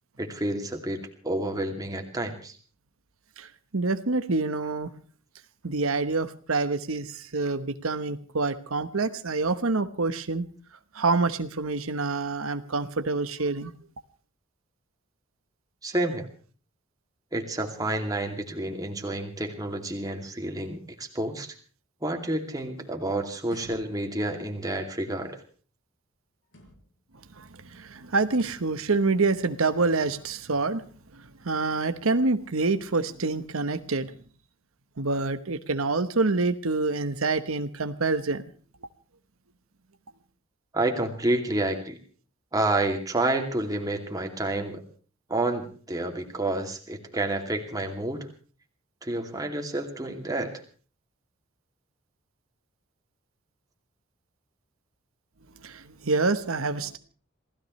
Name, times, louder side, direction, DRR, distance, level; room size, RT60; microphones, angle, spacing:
voice 1, 0.2-2.6 15.8-16.3 17.3-21.5 22.0-25.4 40.7-42.0 42.5-44.8 45.3-48.3 49.0-50.6, right 2 dB, 15° right, 4 dB, 2.6 m, -29 dB
voice 2, 3.7-4.9 5.6-10.5 10.9-13.7 27.4-30.8 31.4-34.1 35.0-38.4 55.6-57.0, right 3 dB, 85° right, 10 dB, 1.1 m, -27 dB
sound 1, 23.4-24.2 26.4-27.1 28.3-28.8, equal, 60° left, 6.1 m, -50 dB
27.5 x 16.5 x 3.2 m, 0.40 s
head